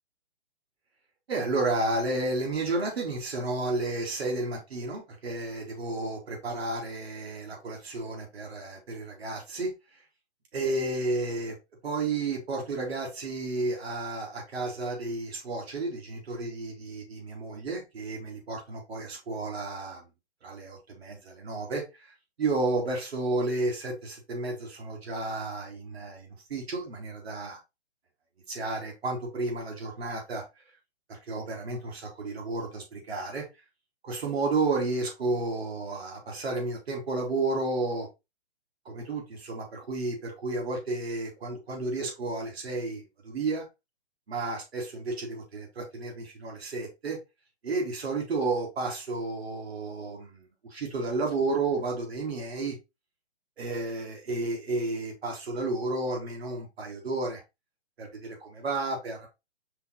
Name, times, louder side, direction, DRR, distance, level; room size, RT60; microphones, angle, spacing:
voice 1, 1.3-9.7 10.5-11.6 11.8-20.1 20.4-22.1 22.4-27.6 28.5-30.4 31.1-33.4 34.0-38.1 38.8-43.6 44.3-47.2 47.6-52.8 53.6-57.4 58.0-59.3, right 3 dB, 65° right, 3.3 m, -32 dB
5.2 x 4.6 x 4.0 m
figure-of-eight pair, 135°, 34 cm